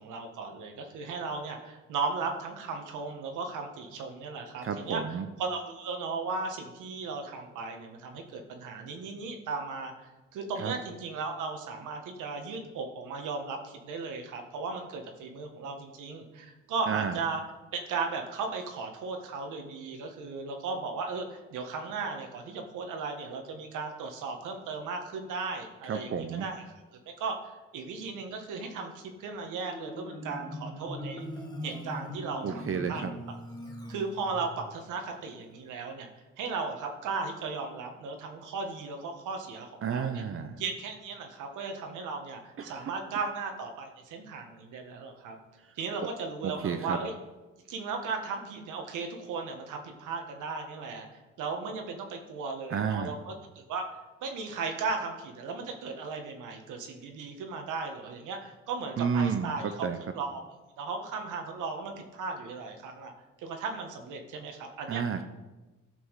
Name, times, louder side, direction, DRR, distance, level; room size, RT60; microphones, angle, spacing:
voice 1, 0.0-5.0 5.4-9.9 10.3-17.4 17.7-26.5 27.0-27.3 27.7-31.3 31.6-33.0 33.9-36.1 36.4-40.2 40.6-45.4 45.8-47.1 47.7-51.1 51.4-53.8 54.2-59.6 60.1-60.4 60.8-63.1 63.4-65.0, right 4 dB, 85° right, 4 dB, 1.6 m, -36 dB
voice 2, 4.6-5.3 10.6-10.7 16.9-17.2 25.8-26.5 32.4-33.1 39.8-40.6 42.6-42.9 46.4-47.0 52.7-53.2 59.0-60.0 64.9-65.2, right 6 dB, 45° right, 8 dB, 0.7 m, -31 dB
Marimba xylophone, 29.6-34.7, equal, 15° left, 2.0 m, -41 dB
12.5 x 6.2 x 4.8 m, 1.1 s
cardioid pair, 90°, 30 cm